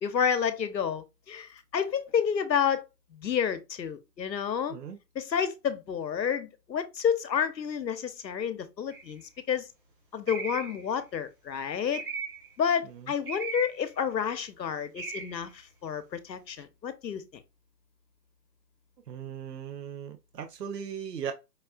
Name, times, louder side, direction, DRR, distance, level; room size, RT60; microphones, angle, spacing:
voice 1, 0.0-2.8 3.1-4.8 5.1-9.2 9.5-9.7 10.1-12.0 12.6-17.2, left 7 dB, 80° left, 0.9 m, -30 dB
sound 1, 8.9-9.2 10.3-10.9 11.9-12.5 13.3-13.9 14.9-15.4 16.6-16.7, right 4 dB, 35° right, 1.3 m, -37 dB
voice 2, 19.1-21.3, right 8 dB, 70° right, 0.8 m, -38 dB
5.2 x 2.4 x 2.3 m
hypercardioid pair, 155°, 50 cm